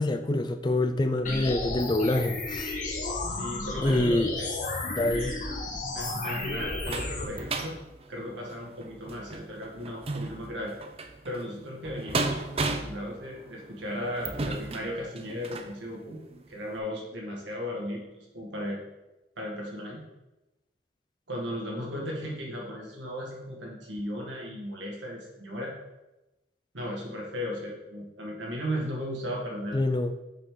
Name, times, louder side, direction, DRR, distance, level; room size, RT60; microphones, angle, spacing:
voice 1, 0.0-2.8 3.8-4.4 5.0-5.3 29.7-30.1, left 2 dB, 25° left, 9 dB, 0.4 m, -26 dB
sound 1, 1.2-7.2, left 2 dB, 40° left, 1.0 m, -33 dB
voice 2, 3.3-4.5 5.1-5.4 5.9-7.8 8.1-10.7 11.2-16.2 16.5-18.9 19.4-20.0 21.3-25.7 26.7-29.8, equal, 80° right, -2 dB, 2.1 m, -36 dB
sound 2, 5.9-15.8 16.3-16.4 16.8-16.9, right 3 dB, 30° right, 0.5 m, -35 dB
6.6 x 5.3 x 3.9 m, 0.99 s
head